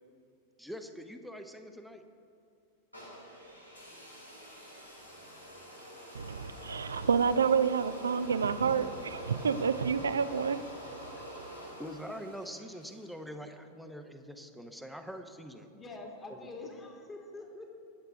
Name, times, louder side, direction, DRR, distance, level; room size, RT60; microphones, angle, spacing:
voice 1, 0.6-2.0 11.6-15.7 16.3-16.5, equal, ahead, 0.9 m, -44 dB
sound 1, 2.9-13.1, equal, 85° left, 2.3 m, -46 dB
voice 2, 6.1-10.6, right 6 dB, 70° right, 0.5 m, -29 dB
voice 3, 15.7-17.7, left 2 dB, 20° left, 2.1 m, -45 dB
23.0 x 8.1 x 3.5 m
figure-of-eight pair, 90°, 0 cm